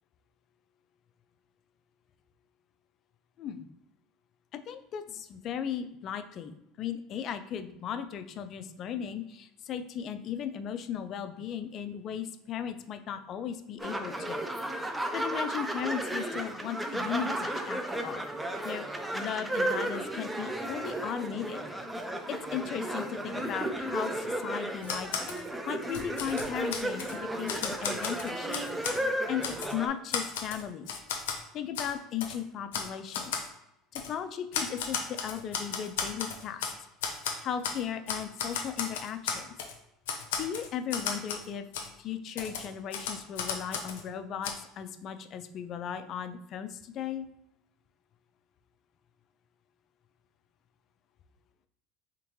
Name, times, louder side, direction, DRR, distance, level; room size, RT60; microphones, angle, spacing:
voice 1, 4.5-14.7 15.1-18.2 18.6-21.7 22.3-25.1 25.7-28.6 29.3-30.9 31.5-33.3 33.9-36.7 37.4-39.5 40.4-41.7 42.0-47.3, left 8 dB, 50° left, 9 dB, 0.4 m, -36 dB
sound 1, 13.8-29.9, right 1 dB, 10° right, 0.5 m, -34 dB
Typewriter, 24.8-25.4 25.8-27.1 27.5-29.0 29.4-29.7 30.1-31.4 31.7-31.9 32.2-32.4 32.7-32.9 33.1-33.5 33.9-34.1 34.5-36.7 37.0-37.8 38.1-39.7 40.1-41.5 41.7-41.9 42.4-44.0 44.4-44.5, left 6 dB, 90° left, 0.6 m, -34 dB
3.7 x 3.5 x 3.0 m, 0.81 s
supercardioid pair, 105°, 0 cm